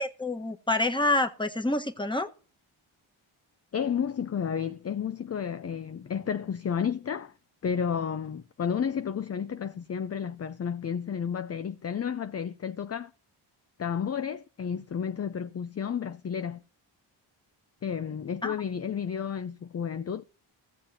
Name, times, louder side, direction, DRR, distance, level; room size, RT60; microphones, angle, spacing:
voice 1, 0.0-2.3 18.4-18.5, left 2 dB, 10° left, 1.3 m, -27 dB
voice 2, 3.7-7.3 7.6-13.1 13.8-16.6 17.8-20.2, left 7 dB, 30° left, 0.5 m, -31 dB
17.0 x 7.3 x 2.8 m
cardioid pair, 65°, 49 cm